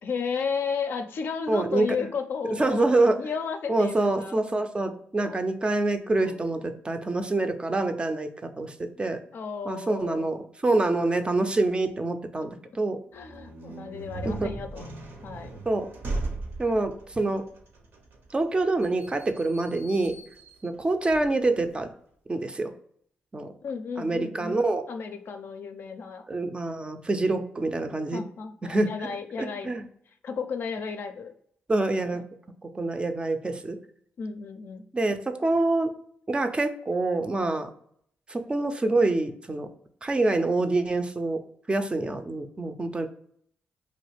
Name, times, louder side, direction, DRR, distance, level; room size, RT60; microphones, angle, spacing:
voice 1, 0.0-4.4 5.2-5.4 6.2-6.4 9.3-10.4 13.1-14.9 15.2-15.6 23.6-24.6 24.9-26.2 28.1-29.7 30.2-31.3 31.9-32.3 34.2-34.8, left 5 dB, 65° left, 7 dB, 0.4 m, -34 dB
voice 2, 1.5-1.9 2.6-3.2 3.7-9.2 9.7-13.0 14.2-14.5 15.7-15.9 16.6-17.4 18.3-20.2 20.6-21.9 22.3-22.7 23.3-23.5 24.0-24.9 26.3-28.2 28.6-29.1 29.4-29.8 31.7-32.2 32.6-33.8 34.9-35.9 36.3-37.7 38.3-39.7 40.0-41.4 41.7-43.1, right 2 dB, 25° right, 7 dB, 0.4 m, -26 dB
sound 1, 13.1-21.8, right 2 dB, 70° right, 0.8 m, -39 dB
3.0 x 2.4 x 3.2 m, 0.66 s
cardioid pair, 70°, 4 cm